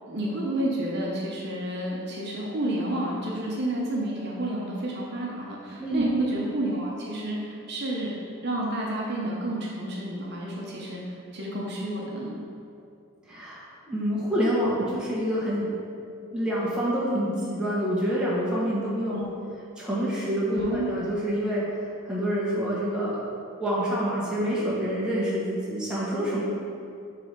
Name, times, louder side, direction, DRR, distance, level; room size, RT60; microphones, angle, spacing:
voice 1, 0.1-8.1 8.4-12.4 19.1-19.3 20.5-20.9, right 1 dB, 50° right, -4 dB, 0.9 m, -30 dB
voice 2, 13.3-13.6 13.9-15.7 16.3-19.2 19.8-21.7 22.0-23.2 23.6-26.4, equal, 5° right, -8 dB, 1.2 m, -27 dB
6.9 x 3.4 x 5.2 m, 2.5 s
head